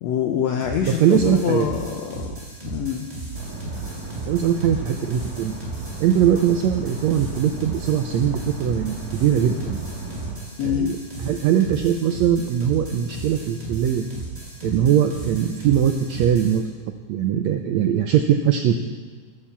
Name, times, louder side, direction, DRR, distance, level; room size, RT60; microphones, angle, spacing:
voice 1, 0.0-2.3 2.6-3.1 10.6-10.9, left 8 dB, 80° left, 4 dB, 1.6 m, -25 dB
sound 1, 0.6-16.6, right 2 dB, 10° right, 3.1 m, -35 dB
voice 2, 0.9-1.7 4.3-5.5 6.0-9.8 10.6-14.1 14.6-16.6 17.1-18.8, right 9 dB, 85° right, 6 dB, 1.6 m, -21 dB
sound 2, 3.3-10.3, right 3 dB, 30° right, 2.4 m, -35 dB
12.0 x 11.5 x 7.3 m, 1.5 s
omnidirectional pair, 3.9 m